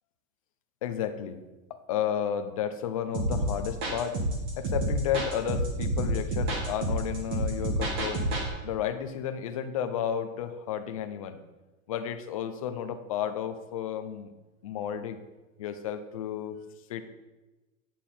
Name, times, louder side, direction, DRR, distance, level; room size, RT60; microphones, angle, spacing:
voice 1, 0.8-1.4 1.7-4.2 4.6-8.2 8.6-11.4 11.9-14.3 14.6-15.2 15.6-16.6 16.9-17.0, left 9 dB, 25° left, 8 dB, 0.5 m, -32 dB
sound 1, 3.1-8.5, right 1 dB, 25° right, 2.1 m, -29 dB
12.0 x 9.1 x 4.3 m, 1.1 s
supercardioid pair, 170°, 44 cm